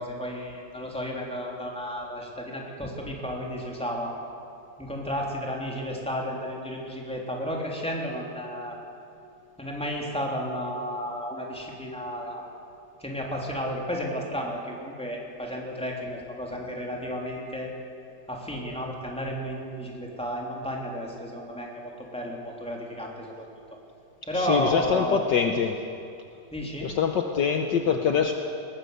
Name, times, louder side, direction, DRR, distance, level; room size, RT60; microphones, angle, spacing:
voice 1, 0.0-4.1 4.8-8.8 9.6-12.4 13.0-17.7 18.3-23.3 24.3-25.2 26.5-26.9, equal, 5° left, -1 dB, 3.3 m, -32 dB
voice 2, 24.3-25.7 26.8-28.3, left 6 dB, 60° left, 4 dB, 1.6 m, -24 dB
21.0 x 19.5 x 8.1 m, 2.5 s
omnidirectional pair, 2.3 m